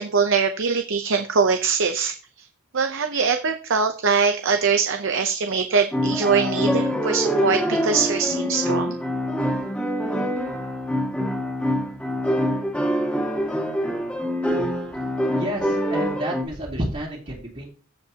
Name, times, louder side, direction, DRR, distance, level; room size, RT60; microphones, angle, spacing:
voice 1, 0.0-2.5 2.7-9.0, right 5 dB, 60° right, 7 dB, 0.7 m, -22 dB
sound 1, 5.9-16.4, equal, 5° left, 2.0 m, -25 dB
voice 2, 15.4-17.7, right 1 dB, 35° right, -7 dB, 2.2 m, -30 dB
14.5 x 5.2 x 2.8 m, 0.38 s
head